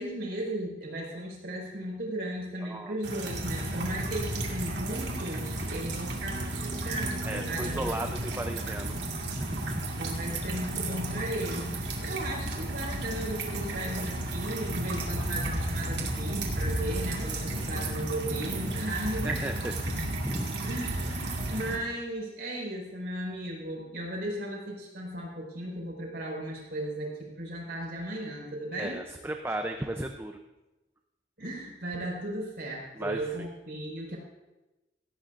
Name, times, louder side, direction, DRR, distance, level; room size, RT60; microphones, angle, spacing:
voice 1, 0.0-8.3 9.9-19.4 20.6-29.0 31.4-34.2, right 1 dB, 60° right, -2 dB, 5.1 m, -36 dB
voice 2, 2.6-3.0 7.2-9.0 9.4-9.9 17.5-17.8 19.2-20.6 28.8-30.4 33.0-33.5, right 1 dB, 15° right, 5 dB, 0.6 m, -35 dB
sound 1, 3.0-21.8, right 1 dB, 75° right, 2.0 m, -33 dB
17.0 x 15.5 x 2.6 m, 1.0 s
head